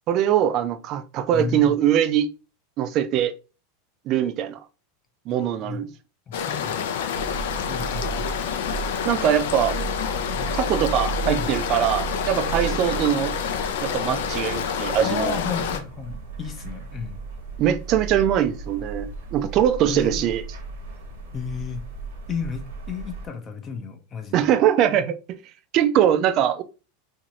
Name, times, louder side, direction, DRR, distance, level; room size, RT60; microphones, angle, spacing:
voice 1, 0.1-2.3 2.8-3.3 4.1-4.6 5.3-5.9 9.0-9.8 10.5-13.3 13.8-15.3 17.6-20.4 24.3-25.2 25.7-26.6, right 10 dB, 40° right, 0.3 m, -22 dB
voice 2, 1.3-1.8 5.5-5.8 6.3-7.0 7.7-8.3 10.3-10.5 11.2-11.5 15.0-17.2 19.9-20.3 21.3-21.8 22.3-24.5, left 6 dB, 25° left, 0.5 m, -33 dB
sound 1, 6.3-15.8, left 8 dB, 75° left, 0.4 m, -28 dB
sound 2, 7.1-23.3, right 5 dB, 80° right, 1.0 m, -35 dB
2.7 x 2.5 x 2.9 m
supercardioid pair, 150°, 0 cm